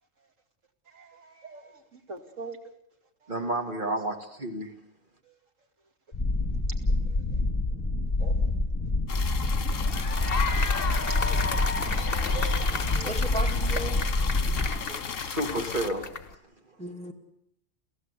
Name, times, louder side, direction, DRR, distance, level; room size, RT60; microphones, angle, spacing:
voice 1, 0.9-2.6 3.2-3.3 5.3-5.4 7.1-7.4 8.2-8.4 12.2-12.5, right 5 dB, 75° right, 4 dB, 2.8 m, -43 dB
voice 2, 3.3-4.7 14.7-16.1, right 1 dB, 40° right, 4 dB, 2.5 m, -31 dB
sound 1, 6.1-14.8, left 2 dB, 30° left, 3.0 m, -27 dB
sound 2, 9.1-15.9, left 6 dB, 75° left, 1.6 m, -36 dB
sound 3, 9.7-16.3, left 4 dB, 45° left, 1.8 m, -34 dB
voice 3, 12.9-14.0 14.3-14.8 16.8-17.1, equal, 5° left, 1 dB, 2.5 m, -36 dB
29.5 x 15.5 x 8.3 m, 0.78 s
omnidirectional pair, 1.4 m